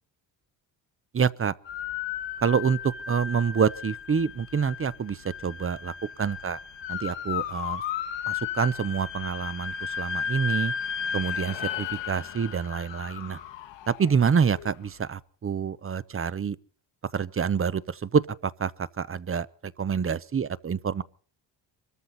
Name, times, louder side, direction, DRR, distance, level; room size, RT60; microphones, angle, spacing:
voice 1, 1.1-1.5 2.4-2.8 3.1-5.2 5.4-5.9 6.2-6.6 6.9-7.8 8.3-10.7 11.1-13.4 13.9-16.6 17.1-18.2 18.6-18.7 19.0-19.5 19.8-21.0, right 6 dB, 30° right, 0.7 m, -27 dB
sound 1, 1.7-14.7, left 7 dB, 70° left, 1.4 m, -34 dB
24.0 x 14.0 x 4.1 m
cardioid pair, 95°, 46 cm